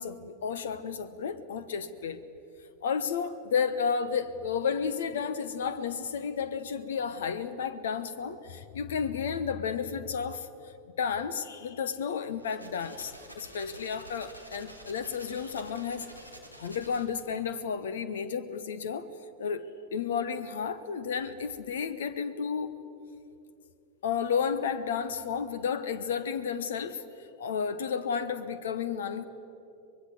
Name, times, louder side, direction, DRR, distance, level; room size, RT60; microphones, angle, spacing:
voice 1, 0.0-2.2 2.8-16.0 16.6-19.1 19.4-22.7 24.0-27.0 27.4-29.2, left 6 dB, 60° left, 14 dB, 1.0 m, -32 dB
sound 1, 12.3-17.3, right 1 dB, 85° left, 2.6 m, -49 dB
24.5 x 21.5 x 7.8 m, 2.7 s
figure-of-eight pair, 90°, 0 cm